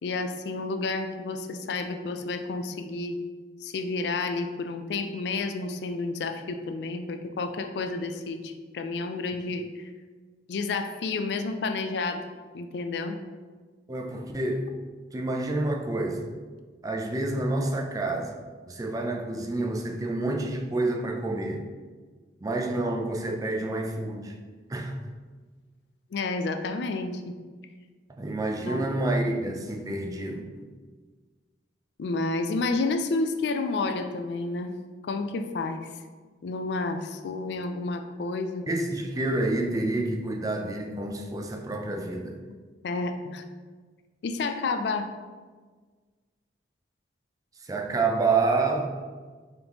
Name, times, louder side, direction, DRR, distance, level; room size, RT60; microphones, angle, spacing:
voice 1, 0.0-3.2 3.6-9.9 10.5-12.3 12.5-13.2 26.1-27.4 28.7-28.8 32.0-34.7 35.0-35.8 36.4-38.7 42.8-43.4 44.2-45.1, left 3 dB, 65° left, 7 dB, 0.3 m, -30 dB
voice 2, 13.9-14.7 15.1-16.3 16.8-18.4 18.7-21.6 22.4-24.4 24.7-25.0 28.2-30.7 38.7-42.4 47.6-49.1, right 2 dB, 20° right, 2 dB, 0.4 m, -28 dB
3.9 x 3.5 x 2.9 m, 1.4 s
head